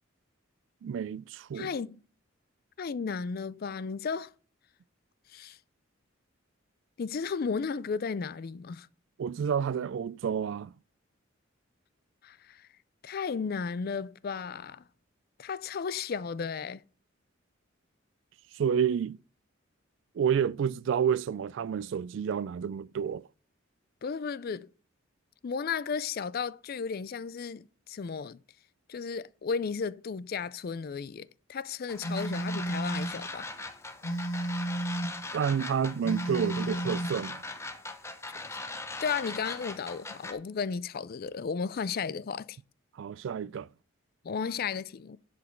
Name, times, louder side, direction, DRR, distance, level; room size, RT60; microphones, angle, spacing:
voice 1, 0.8-1.7 9.2-10.7 18.5-19.2 20.2-23.2 35.3-37.4 43.0-43.7, right 7 dB, 65° right, 0.3 m, -29 dB
voice 2, 1.5-2.0 2.8-4.3 5.3-5.6 7.0-8.9 12.2-12.7 13.0-14.8 15.4-16.8 24.0-24.7 25.4-28.4 28.9-33.5 38.3-38.5 39.0-42.6 44.2-45.2, left 5 dB, 45° left, 0.4 m, -34 dB
sound 1, 31.9-40.3, left 2 dB, 15° left, 0.8 m, -40 dB
Telephone, 32.0-33.2 34.0-35.2 36.0-37.2, right 1 dB, 70° left, 1.2 m, -32 dB
10.5 x 5.0 x 4.5 m
head